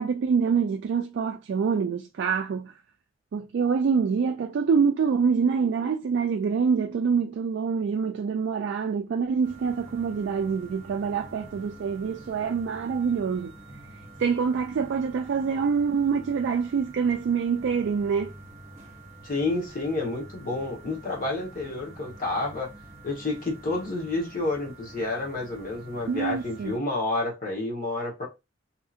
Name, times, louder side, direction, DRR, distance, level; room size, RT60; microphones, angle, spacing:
voice 1, 0.0-2.7 3.3-13.5 14.2-18.3 26.1-26.8, right 6 dB, 65° right, 0.3 m, -26 dB
sound 1, 9.4-26.8, right 2 dB, 35° right, 1.0 m, -47 dB
voice 2, 19.2-22.7 23.0-28.3, left 2 dB, 50° left, 1.0 m, -29 dB
2.8 x 2.7 x 2.4 m
head